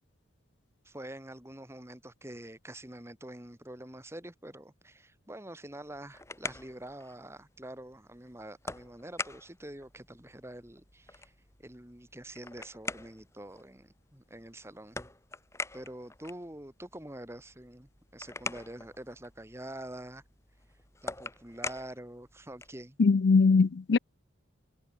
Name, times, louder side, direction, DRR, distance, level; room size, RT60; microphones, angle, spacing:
voice 1, 0.9-11.3 11.6-15.0 15.7-20.2 21.0-23.0, right 1 dB, 15° right, 1.9 m, -46 dB
sound 1, 5.8-22.9, left 3 dB, 15° left, 4.3 m, -45 dB
voice 2, 23.0-24.0, left 4 dB, 60° left, 0.4 m, -21 dB
head